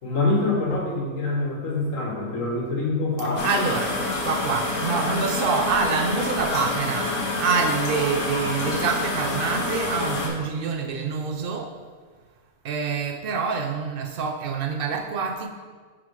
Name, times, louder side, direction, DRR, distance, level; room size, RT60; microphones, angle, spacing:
voice 1, 0.0-3.5, left 3 dB, 60° left, 1.9 m, -25 dB
voice 2, 3.2-11.7 12.6-15.5, right 5 dB, 55° right, 0.6 m, -26 dB
sound 1, 3.4-10.3, left 2 dB, 75° left, 1.6 m, -27 dB
9.5 x 3.8 x 4.7 m
omnidirectional pair, 1.6 m